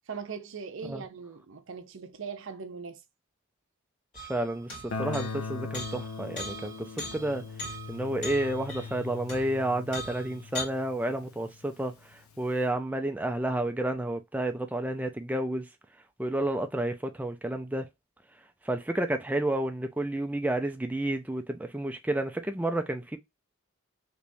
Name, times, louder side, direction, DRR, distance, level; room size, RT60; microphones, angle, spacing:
voice 1, 0.1-3.0, right 5 dB, 60° right, 0.5 m, -40 dB
sound 1, 4.1-5.5 5.7-9.6 9.9-10.6, left 1 dB, 50° left, 2.4 m, -40 dB
voice 2, 4.2-7.4 7.9-15.7 16.2-17.9 18.6-23.2, right 1 dB, 5° right, 0.3 m, -31 dB
Guitar, 4.9-11.6, left 4 dB, 80° left, 0.6 m, -40 dB
3.4 x 3.0 x 2.6 m
head